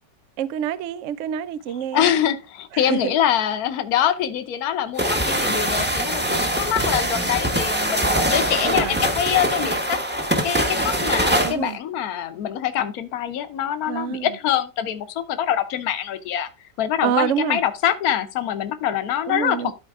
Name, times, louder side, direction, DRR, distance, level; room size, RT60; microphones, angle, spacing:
voice 1, 0.4-2.1 2.7-3.1 8.6-9.0 11.4-11.8 13.9-14.3 17.0-17.6 19.3-19.7, right 9 dB, 70° right, 0.7 m, -26 dB
voice 2, 1.9-16.5 16.8-19.7, left 10 dB, 65° left, 1.3 m, -24 dB
sound 1, 5.0-11.5, right 1 dB, 10° right, 0.9 m, -22 dB
12.5 x 4.5 x 3.6 m
omnidirectional pair, 1.8 m